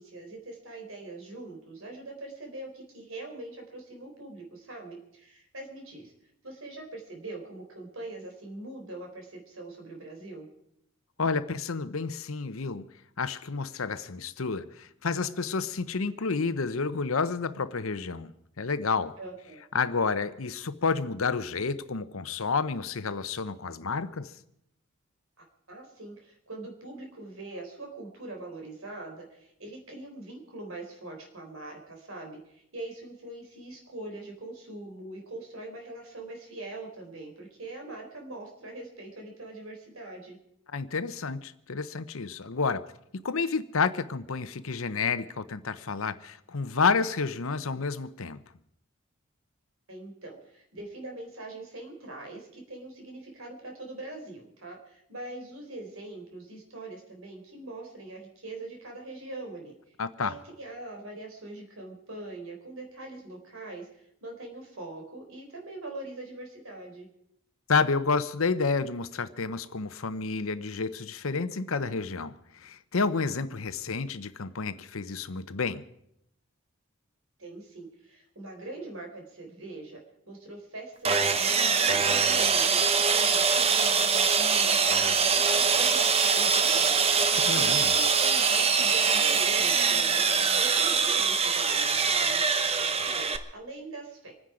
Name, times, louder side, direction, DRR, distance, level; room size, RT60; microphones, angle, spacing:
voice 1, 0.0-6.1 6.4-10.5 19.2-19.6 25.7-40.4 49.9-59.7 60.2-67.1 77.4-80.0 80.3-92.4 92.7-94.3, right 2 dB, 80° right, 4.1 m, -42 dB
voice 2, 11.2-12.8 13.2-19.2 19.7-24.3 40.7-42.8 43.1-48.4 60.0-60.3 67.7-75.8 87.4-87.9, left 4 dB, 80° left, 0.8 m, -30 dB
Sawing, 81.0-93.4, right 5 dB, 30° right, 0.8 m, -23 dB
26.0 x 9.9 x 5.0 m
head